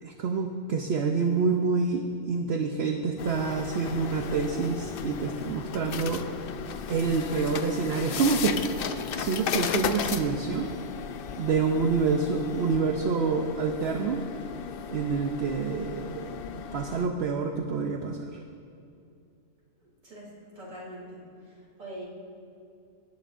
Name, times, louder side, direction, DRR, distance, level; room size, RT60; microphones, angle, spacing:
voice 1, 0.0-6.2 6.9-8.5 9.2-10.7 11.4-14.2 14.9-18.3, right 5 dB, 60° right, 4 dB, 0.8 m, -27 dB
sound 1, 3.2-17.1, left 7 dB, 60° left, 0.6 m, -35 dB
voice 2, 20.6-21.2 21.5-22.0, right 1 dB, 85° right, -6 dB, 3.7 m, -42 dB
18.5 x 10.0 x 2.5 m, 2.5 s
omnidirectional pair, 1.4 m